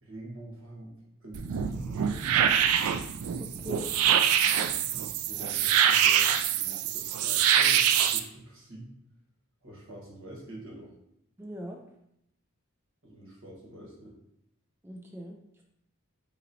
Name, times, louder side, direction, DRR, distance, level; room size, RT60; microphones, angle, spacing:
voice 1, 0.0-0.9 1.2-2.8 4.9-8.9 9.6-10.9 13.0-14.2, right 1 dB, 70° right, -2 dB, 1.3 m, -46 dB
sound 1, 1.3-8.2, right 9 dB, 90° right, 0.3 m, -25 dB
voice 2, 3.4-3.9 11.4-11.8 14.8-15.4, equal, 10° right, 0 dB, 0.3 m, -40 dB
4.2 x 4.0 x 2.7 m, 0.78 s
head